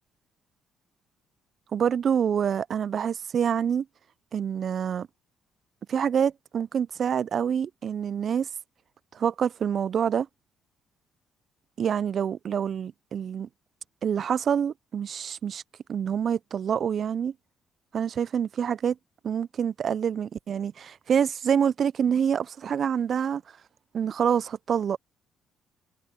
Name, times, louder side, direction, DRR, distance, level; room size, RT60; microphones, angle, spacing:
voice 1, 1.7-3.9 4.3-5.1 5.9-8.5 9.1-10.3 11.8-13.5 14.0-15.6 15.9-17.3 17.9-19.0 19.2-23.4 23.9-25.0, right 8 dB, 55° right, 0.3 m, -26 dB
supercardioid pair, 70°, 0 cm